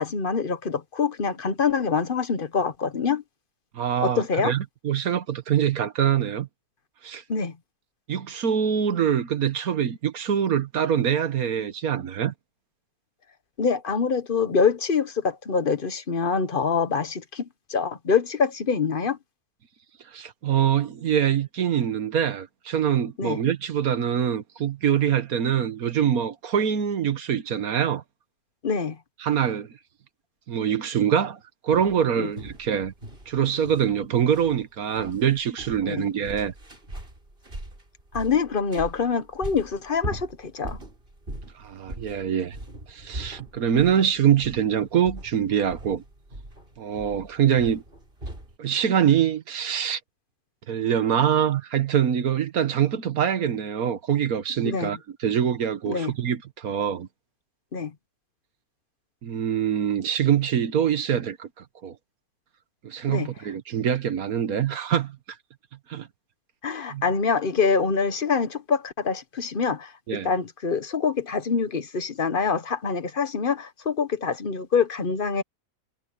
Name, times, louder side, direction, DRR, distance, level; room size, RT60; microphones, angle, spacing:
voice 1, 0.0-3.2 4.0-4.5 7.3-7.5 13.6-19.2 23.2-23.4 28.6-29.0 32.2-32.3 35.9-36.1 38.1-40.8 54.6-54.9 55.9-56.1 57.7-57.9 63.1-63.3 66.6-69.9 70.2-75.4, left 5 dB, 40° left, 1.1 m, -25 dB
voice 2, 3.7-6.5 7.0-7.2 8.1-12.3 20.1-28.0 29.2-29.7 30.5-32.9 33.3-36.5 41.6-42.6 42.9-46.0 46.8-47.8 48.6-50.0 50.7-57.1 59.2-61.5 61.8-61.9 62.8-65.2 65.9-66.1 66.9-67.0 70.1-70.3, right 8 dB, 65° right, 1.5 m, -24 dB
sound 1, 31.7-48.6, right 1 dB, 35° right, 5.3 m, -40 dB
omnidirectional pair, 1.7 m